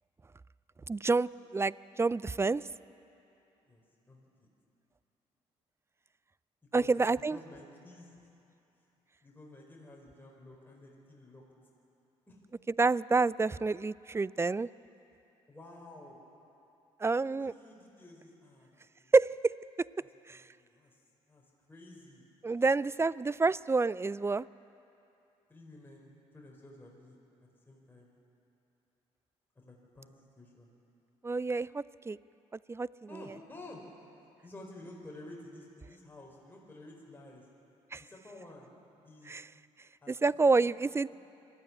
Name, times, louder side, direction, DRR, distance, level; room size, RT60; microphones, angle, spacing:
voice 1, 0.9-2.6 6.7-7.4 12.8-14.7 17.0-17.5 19.1-19.3 20.3-20.4 22.4-24.4 31.2-32.2 32.7-32.9 37.9-38.0 39.3-39.4 40.2-41.1, right 3 dB, 20° right, 20 dB, 0.4 m, -28 dB
voice 2, 3.7-4.5 6.7-8.3 9.2-11.4 12.3-12.4 15.5-16.2 17.3-19.1 20.0-21.0 21.3-22.3 25.5-28.1 29.5-30.7 33.1-33.8 34.4-37.4 38.0-38.7 39.0-39.4 40.0-40.7, left 2 dB, 15° left, -2 dB, 4.7 m, -52 dB
21.0 x 13.5 x 9.8 m, 2.9 s
supercardioid pair, 60°, 14 cm